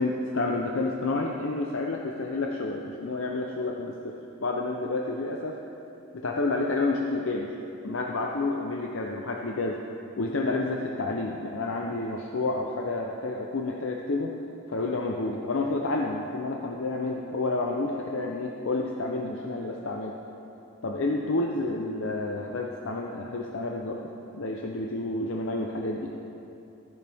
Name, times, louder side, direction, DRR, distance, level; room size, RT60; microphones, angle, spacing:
voice 1, 0.0-5.6 6.2-7.5 7.8-9.8 10.2-14.4 14.7-20.2 20.8-24.0 24.3-26.1, left 2 dB, 65° left, 0 dB, 0.7 m, -29 dB
14.5 x 10.5 x 3.5 m, 2.8 s
head